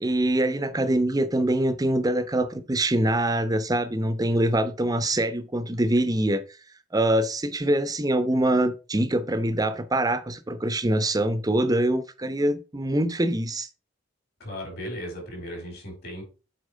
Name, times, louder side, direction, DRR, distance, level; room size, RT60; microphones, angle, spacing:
voice 1, 0.0-6.4 6.9-13.7, right 1 dB, 20° right, 0.7 m, -24 dB
voice 2, 14.4-16.2, equal, 55° left, 4.7 m, -36 dB
8.1 x 4.7 x 5.0 m
head